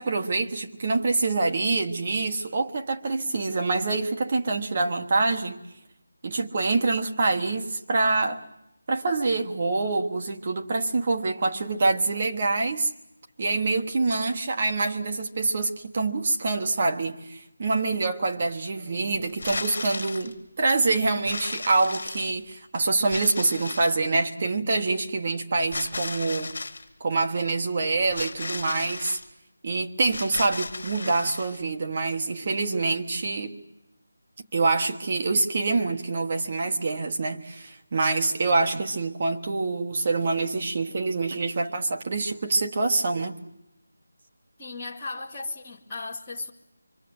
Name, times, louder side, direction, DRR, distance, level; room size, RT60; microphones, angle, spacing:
voice 1, 0.0-5.6 6.2-8.4 8.9-12.9 13.4-26.5 27.0-29.2 29.6-33.6 34.5-43.4, right 3 dB, 25° right, 1.3 m, -26 dB
sound 1, 19.3-20.3 21.2-22.5 23.1-24.0 25.7-26.8 28.1-29.2 30.1-31.6, left 3 dB, 40° left, 2.5 m, -35 dB
voice 2, 44.6-46.5, left 3 dB, 10° left, 2.2 m, -36 dB
25.5 x 25.0 x 7.9 m
figure-of-eight pair, 180°, 0 cm